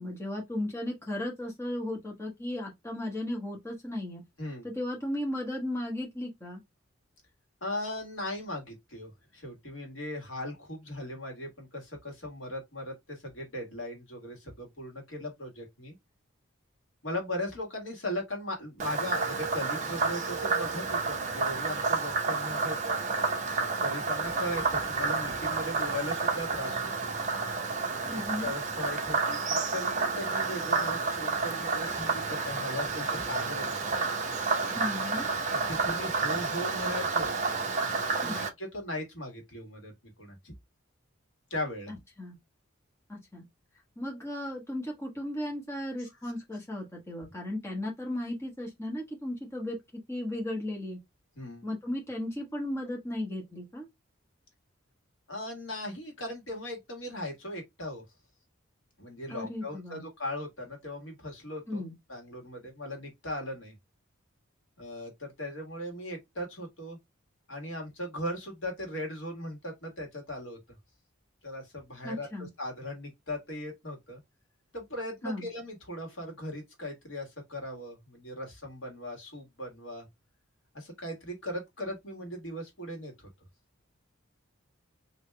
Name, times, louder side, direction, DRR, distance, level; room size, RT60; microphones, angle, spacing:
voice 1, 0.0-4.2 4.6-6.6 28.1-28.5 34.7-35.3 38.2-38.5 41.9-42.4 43.1-43.4 44.0-49.8 50.1-51.0 51.6-53.9 59.3-60.0 61.7-61.9 72.0-72.5 75.2-75.5, left 1 dB, 10° left, 1.1 m, -35 dB
voice 2, 7.6-15.9 17.0-23.0 23.8-27.1 28.0-33.9 35.5-37.4 38.2-39.9 40.2-40.5 41.5-41.9 46.0-46.1 51.3-51.7 55.3-58.0 59.0-61.8 62.1-63.7 64.8-67.0 67.5-70.6 71.4-74.2 74.7-80.1 80.7-83.1, left 1 dB, 65° left, 1.6 m, -38 dB
Frog, 18.8-38.5, right 4 dB, 35° right, 0.7 m, -30 dB
3.5 x 2.7 x 3.3 m
head